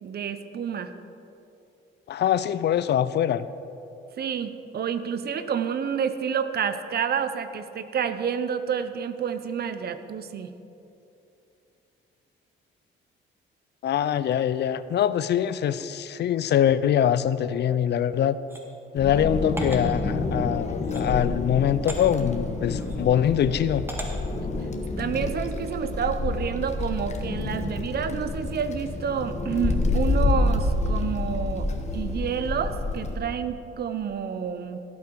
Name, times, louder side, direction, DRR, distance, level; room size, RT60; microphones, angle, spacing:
voice 1, 0.0-0.9 4.2-10.5 25.0-31.7 31.9-34.8, right 7 dB, 55° right, 11 dB, 0.8 m, -29 dB
voice 2, 2.1-3.5 13.8-18.4 18.9-23.8, left 10 dB, 60° left, 15 dB, 0.5 m, -23 dB
sound 1, 18.5-18.6 19.6-19.8 20.8-21.1 21.9-22.0 22.8-23.0 23.9-24.1, right 1 dB, 10° right, 1.9 m, -36 dB
Wind, 19.0-33.1, left 2 dB, 35° left, 1.3 m, -28 dB
17.0 x 8.4 x 4.7 m, 2.8 s
cardioid pair, 90°, 20 cm